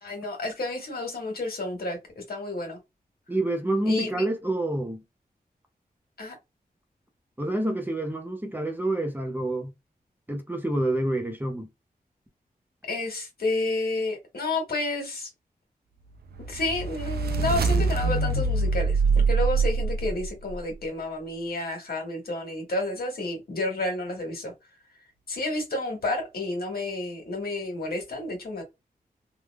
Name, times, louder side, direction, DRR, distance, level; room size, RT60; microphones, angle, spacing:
voice 1, 0.0-2.8 3.9-4.1 6.2-6.3 12.9-15.3 16.5-24.5 25.3-28.6, left 2 dB, 70° left, 1.5 m, -30 dB
voice 2, 3.3-5.0 7.4-9.7 10.3-11.7, right 1 dB, 10° right, 0.7 m, -28 dB
sound 1, 16.3-20.6, right 4 dB, 85° right, 0.4 m, -24 dB
3.4 x 2.3 x 2.2 m
wide cardioid pair, 120°, 16 cm